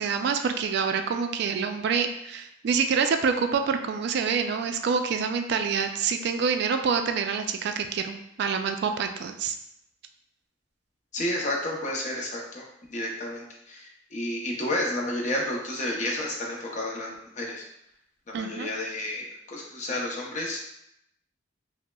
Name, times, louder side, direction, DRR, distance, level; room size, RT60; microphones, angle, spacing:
voice 1, 0.0-9.5 18.3-18.7, right 6 dB, 60° right, 7 dB, 0.3 m, -27 dB
voice 2, 11.1-12.6 12.9-17.6 18.3-20.6, left 1 dB, 40° left, -1 dB, 0.7 m, -31 dB
5.4 x 2.0 x 2.2 m, 0.80 s
head